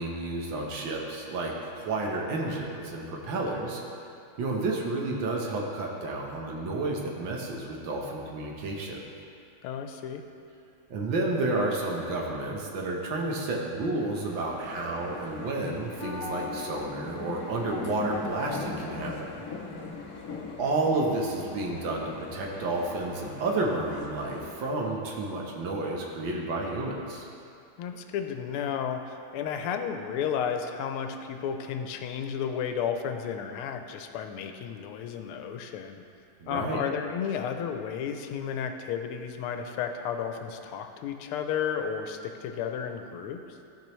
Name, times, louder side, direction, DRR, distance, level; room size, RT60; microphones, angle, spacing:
voice 1, 0.0-3.8 4.4-9.0 10.9-19.4 20.6-27.3 36.4-36.8, right 2 dB, 70° right, -1 dB, 1.6 m, -31 dB
voice 2, 9.6-10.2 27.8-36.0 36.5-43.4, left 7 dB, 85° left, 6 dB, 1.5 m, -33 dB
sound 1, 13.9-24.7, left 4 dB, 65° left, 0.8 m, -40 dB
15.0 x 5.1 x 3.1 m, 2.5 s
omnidirectional pair, 2.3 m